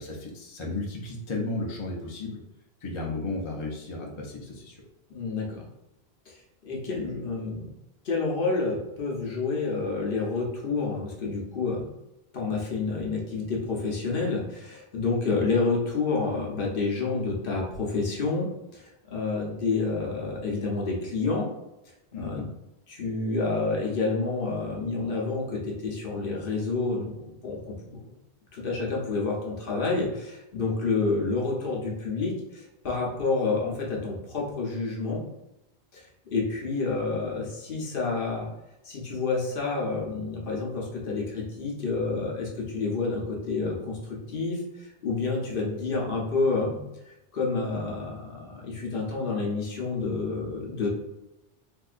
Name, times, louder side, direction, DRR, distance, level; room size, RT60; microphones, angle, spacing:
voice 1, 0.0-2.4 2.8-4.8 22.1-22.4, left 2 dB, 35° left, -2 dB, 0.6 m, -34 dB
voice 2, 5.1-5.6 6.3-6.4 6.6-7.7 8.0-11.9 12.3-21.5 22.2-22.4 22.9-28.1 28.5-35.2 35.9-38.5 38.8-44.0 44.3-50.9, left 3 dB, 60° left, -2 dB, 0.9 m, -29 dB
3.7 x 2.6 x 2.4 m, 0.92 s
omnidirectional pair, 1.0 m